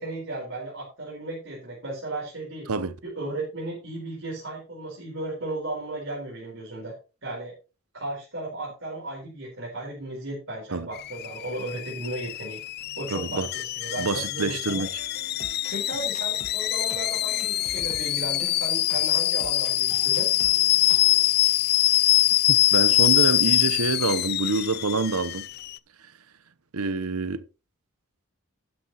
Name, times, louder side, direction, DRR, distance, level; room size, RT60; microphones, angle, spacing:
voice 1, 0.0-2.7 3.0-6.9 7.2-7.5 7.9-12.6 13.0-14.8 15.7-20.3, right 2 dB, 60° right, 4.4 m, -35 dB
Alarm / Boiling, 10.9-25.8, left 15 dB, 45° left, 0.4 m, -24 dB
voice 2, 13.1-13.5 14.0-14.9 22.5-25.5 26.7-27.4, right 4 dB, 90° right, 0.9 m, -26 dB
sound 1, 15.0-21.3, left 2 dB, 30° left, 1.3 m, -45 dB
12.0 x 9.9 x 3.0 m
head